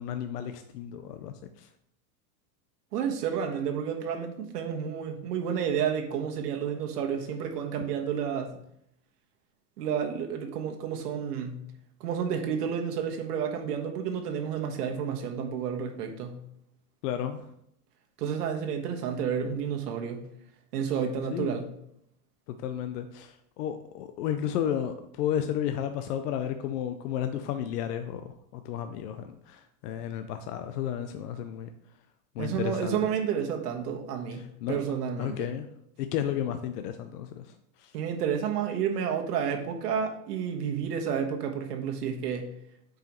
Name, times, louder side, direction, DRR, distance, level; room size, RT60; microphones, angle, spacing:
voice 1, 0.0-1.7 17.0-17.4 21.3-21.6 22.5-31.7 32.4-33.0 34.3-34.8 35.2-35.7 36.0-37.5 37.8-37.9, left 10 dB, 80° left, 8 dB, 0.7 m, -33 dB
voice 2, 2.9-8.5 9.8-11.6 12.0-16.4 18.2-20.2 20.7-21.7 32.4-35.5 37.9-42.5, right 7 dB, 90° right, 3 dB, 1.4 m, -30 dB
9.0 x 4.8 x 3.1 m, 0.73 s
supercardioid pair, 150°, 46 cm